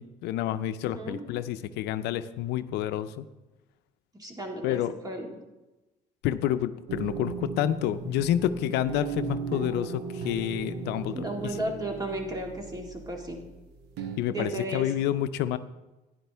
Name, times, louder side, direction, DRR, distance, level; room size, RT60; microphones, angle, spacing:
voice 1, 0.0-3.3 4.6-4.9 6.2-11.6 14.2-15.6, left 12 dB, 85° left, 12 dB, 0.5 m, -29 dB
voice 2, 4.2-5.3 11.1-13.4 14.3-14.9, right 1 dB, 20° right, 2 dB, 2.0 m, -34 dB
sound 1, 6.9-14.2, right 5 dB, 85° right, 1.1 m, -37 dB
12.0 x 10.0 x 3.4 m, 1.1 s
cardioid pair, 110°, 17 cm